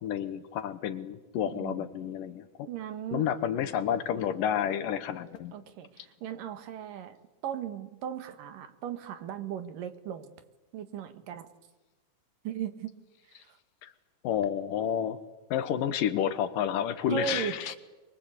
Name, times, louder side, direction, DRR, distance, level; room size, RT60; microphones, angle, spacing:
voice 1, 0.0-2.7 3.1-5.5 13.8-13.9 14.2-15.2 15.5-17.8, left 9 dB, 75° left, 12 dB, 2.7 m, -30 dB
voice 2, 1.6-1.9 2.7-3.3 5.5-7.2 7.4-10.3 10.7-11.5 12.4-12.9 13.3-13.6 17.1-17.8, right 9 dB, 70° right, 10 dB, 3.0 m, -37 dB
23.5 x 23.0 x 8.3 m, 1.1 s
omnidirectional pair, 4.1 m